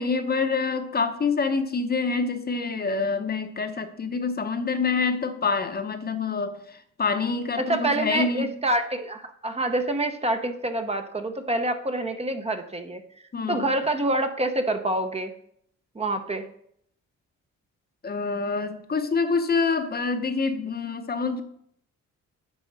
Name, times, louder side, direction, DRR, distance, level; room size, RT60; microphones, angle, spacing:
voice 1, 0.0-8.5 13.3-13.7 18.0-21.4, left 4 dB, 30° left, 0.8 m, -26 dB
voice 2, 7.6-13.0 13.5-15.3 15.9-16.4, right 1 dB, 20° right, 0.8 m, -26 dB
9.7 x 5.3 x 4.0 m
cardioid pair, 90°, 30 cm